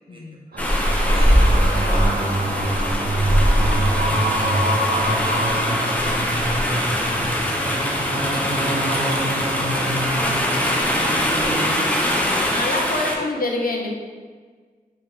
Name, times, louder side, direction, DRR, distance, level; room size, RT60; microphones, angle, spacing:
voice 1, 0.1-0.4 12.1-13.9, left 2 dB, 65° left, 0 dB, 0.6 m, -26 dB
sound 1, 0.5-11.9, right 1 dB, 80° right, 0.6 m, -25 dB
sound 2, 0.6-13.2, equal, 10° left, 0.5 m, -22 dB
voice 2, 1.1-4.1 4.5-8.6 8.9-11.9 13.1-13.3, right 1 dB, 35° right, -3 dB, 0.8 m, -37 dB
3.1 x 2.7 x 3.4 m, 1.5 s
wide cardioid pair, 50°, 16 cm